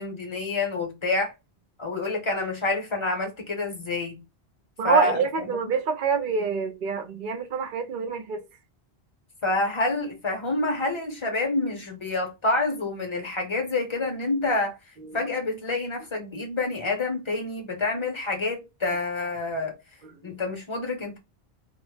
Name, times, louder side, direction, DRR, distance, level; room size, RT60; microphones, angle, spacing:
voice 1, 0.0-1.3 1.8-4.2 4.8-5.5 9.4-14.7 15.1-19.7 20.2-21.2, left 2 dB, 30° left, 0.7 m, -27 dB
voice 2, 4.8-8.4 15.0-15.2 20.2-20.3, right 5 dB, 60° right, 0.6 m, -26 dB
2.1 x 2.0 x 3.1 m
omnidirectional pair, 1.1 m